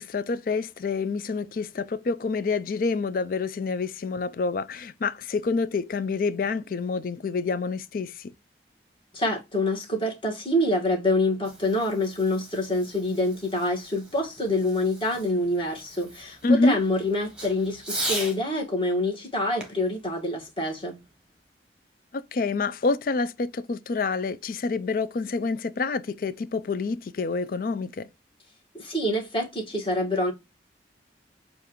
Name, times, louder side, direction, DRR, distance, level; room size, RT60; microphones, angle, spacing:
voice 1, 0.0-8.3 16.4-16.8 22.1-28.1, left 3 dB, 50° left, 0.4 m, -27 dB
voice 2, 9.1-21.0 28.7-30.3, left 1 dB, 30° left, 1.5 m, -26 dB
Fireworks, 11.3-18.4 19.6-21.2, right 1 dB, 5° right, 1.1 m, -39 dB
7.0 x 2.5 x 2.9 m
head